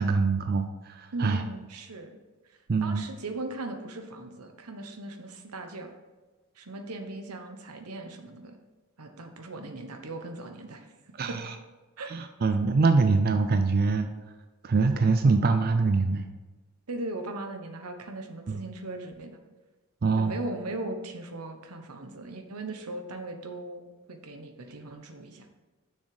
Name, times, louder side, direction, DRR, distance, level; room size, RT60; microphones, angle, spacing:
voice 1, 0.0-1.4 2.7-3.0 11.1-11.6 12.0-14.1 14.6-16.3 18.5-18.6 20.0-20.3, right 4 dB, 45° right, 7 dB, 0.4 m, -24 dB
voice 2, 1.1-2.2 2.8-5.9 6.6-8.6 9.0-10.9 11.3-11.4 12.0-12.1 16.9-19.4 20.1-25.5, right 2 dB, 90° right, 6 dB, 1.1 m, -38 dB
7.1 x 6.4 x 4.9 m, 1.2 s
head